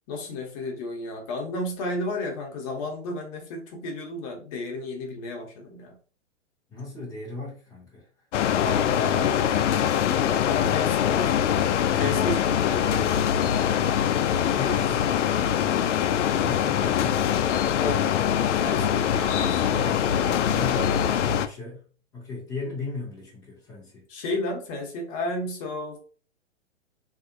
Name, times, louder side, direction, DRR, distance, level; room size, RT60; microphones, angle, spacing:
voice 1, 0.1-6.0 8.5-9.7 10.0-11.4 12.0-13.2 17.8-19.0 24.1-26.0, left 2 dB, 30° left, 0.8 m, -32 dB
voice 2, 6.7-8.1 16.4-17.2 18.5-21.8 22.1-24.0, left 3 dB, 5° left, 0.3 m, -37 dB
sound 1, 8.3-21.5, left 9 dB, 85° left, 0.5 m, -23 dB
3.3 x 2.7 x 2.6 m
hypercardioid pair, 150°, 35 cm